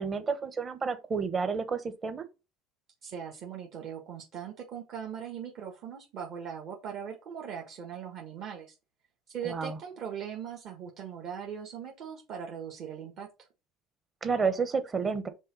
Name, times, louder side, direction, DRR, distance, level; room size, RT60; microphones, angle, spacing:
voice 1, 0.0-2.2 9.4-9.8 14.2-15.3, right 5 dB, 25° right, 1.0 m, -30 dB
voice 2, 3.0-8.8 9.3-13.3, right 8 dB, 50° right, 1.6 m, -40 dB
5.4 x 3.7 x 5.4 m
cardioid pair, 130°, 0 cm